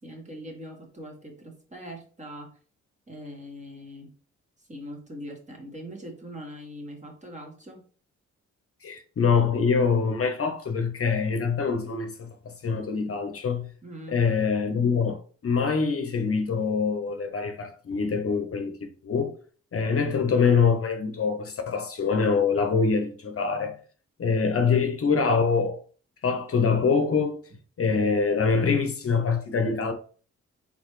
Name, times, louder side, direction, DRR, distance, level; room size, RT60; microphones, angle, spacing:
voice 1, 0.0-2.5 3.1-4.1 4.7-7.8 13.8-14.2, equal, 25° right, 1.7 m, -41 dB
voice 2, 8.8-13.7 14.1-15.2 15.4-19.3 19.7-23.8 24.2-25.8 26.2-27.4 27.8-29.9, left 5 dB, 50° left, 0.8 m, -24 dB
3.9 x 3.6 x 3.1 m
supercardioid pair, 50°, 30 cm